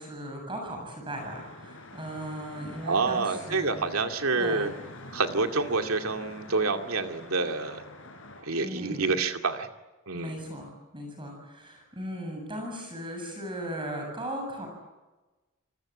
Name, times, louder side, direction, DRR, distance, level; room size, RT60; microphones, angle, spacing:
voice 1, 0.0-3.7 4.4-4.7 8.6-9.0 10.1-10.7 10.9-14.7, right 1 dB, 25° right, 2 dB, 7.7 m, -37 dB
sound 1, 1.2-8.4, left 2 dB, 65° left, 6.2 m, -46 dB
voice 2, 2.8-4.7 5.1-7.8 8.4-9.7 10.1-10.4, right 3 dB, 85° right, 5 dB, 2.4 m, -28 dB
29.0 x 20.5 x 8.9 m, 1.1 s
head